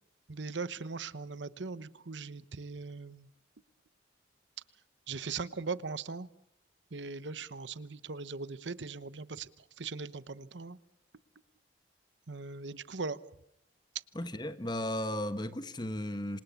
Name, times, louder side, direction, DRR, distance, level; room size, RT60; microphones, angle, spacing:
voice 1, 0.3-3.3 5.1-6.3 6.9-9.5 9.8-10.8 12.3-13.2, right 4 dB, 75° right, 1.0 m, -39 dB
voice 2, 14.1-16.4, left 1 dB, 25° left, 1.3 m, -35 dB
27.0 x 27.0 x 7.1 m
head